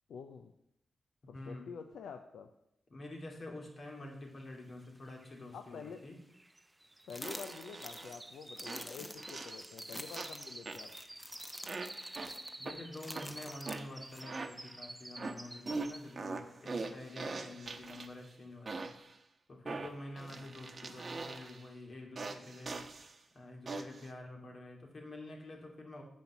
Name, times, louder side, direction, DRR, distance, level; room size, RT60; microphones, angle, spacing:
voice 1, 0.1-0.5 1.3-2.5 5.5-6.0 7.1-10.9, left 6 dB, 85° left, 7 dB, 0.5 m, -48 dB
voice 2, 1.3-1.7 2.9-6.2 12.6-18.9 19.5-22.8 23.3-26.0, left 2 dB, 60° left, 1 dB, 2.5 m, -48 dB
sound 1, 4.6-4.7 4.9-16.3 16.7-17.0 17.5-17.6, right 1 dB, 15° right, 0.6 m, -50 dB
sound 2, 7.1-14.2, left 1 dB, 20° left, 0.9 m, -48 dB
sound 3, 7.2-8.2 8.7-9.8 10.2-11.1 11.7-12.8 13.2-14.8 15.2-18.3 18.7-19.1 19.7-21.7 22.2-23.1 23.7-24.1, right 3 dB, 50° right, 0.9 m, -42 dB
7.5 x 5.3 x 7.1 m, 0.78 s
supercardioid pair, 45°, 0 cm